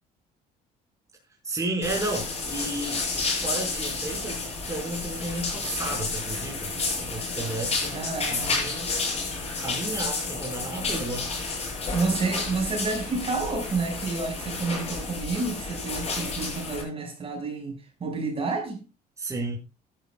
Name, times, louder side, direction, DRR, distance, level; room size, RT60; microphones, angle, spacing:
voice 1, 1.4-4.4 4.7-6.7 7.0-8.0 8.3-8.9 9.3-11.3 19.2-19.6, right 2 dB, 20° right, 5.6 m, -33 dB
sound 1, 1.8-16.8, left 3 dB, 35° left, 7.3 m, -31 dB
voice 2, 7.9-8.7 11.9-18.8, right 4 dB, 35° right, 5.9 m, -30 dB
15.5 x 12.0 x 2.4 m
cardioid pair, 110°, 17 cm